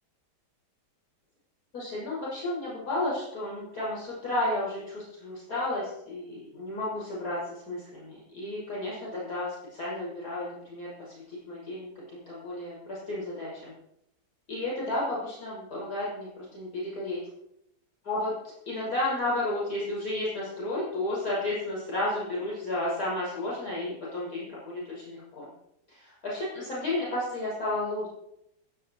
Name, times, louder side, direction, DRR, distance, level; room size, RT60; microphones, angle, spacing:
voice 1, 1.7-13.7 14.5-17.2 18.0-18.3 18.6-25.5 25.9-28.1, left 2 dB, 60° left, -6 dB, 6.8 m, -32 dB
21.5 x 7.6 x 4.8 m, 0.79 s
omnidirectional pair, 1.8 m